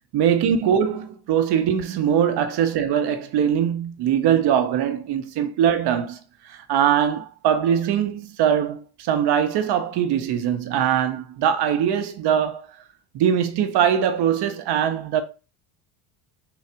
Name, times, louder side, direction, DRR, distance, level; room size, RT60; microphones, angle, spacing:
voice 1, 0.1-6.2 6.4-12.6 13.1-15.2, right 9 dB, 55° right, 0.8 m, -22 dB
3.9 x 2.4 x 4.3 m
supercardioid pair, 100°, 47 cm